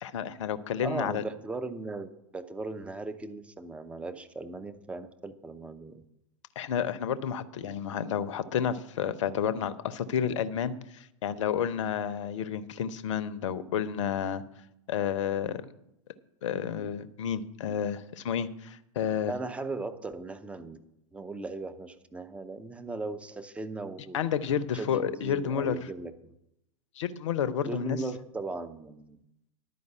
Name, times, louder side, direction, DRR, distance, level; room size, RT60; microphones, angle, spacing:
voice 1, 0.0-1.2 6.6-14.4 14.9-15.7 16.4-19.3 24.1-25.8 27.0-28.0, left 8 dB, 60° left, 15 dB, 0.7 m, -30 dB
voice 2, 0.8-6.0 19.3-20.9 21.1-24.2 24.7-26.3 27.6-29.2, right 3 dB, 5° right, 9 dB, 0.6 m, -38 dB
11.0 x 5.3 x 8.0 m, 0.83 s
figure-of-eight pair, 95°, 18 cm